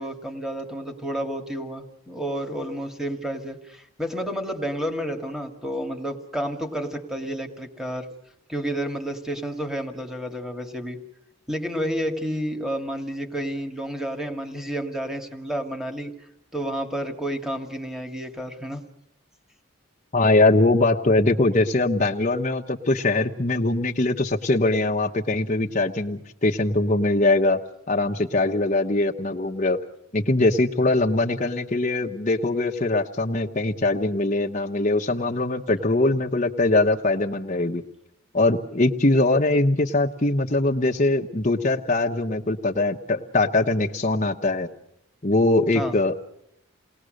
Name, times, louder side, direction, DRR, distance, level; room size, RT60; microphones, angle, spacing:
voice 1, 0.0-8.1 8.5-11.0 11.5-18.8 45.7-46.0, equal, ahead, 4 dB, 2.1 m, -30 dB
voice 2, 20.1-27.6 27.9-29.8 30.1-37.8 38.3-44.7 45.2-46.1, left 2 dB, 35° left, 1 dB, 1.0 m, -22 dB
29.0 x 20.0 x 6.5 m, 0.76 s
head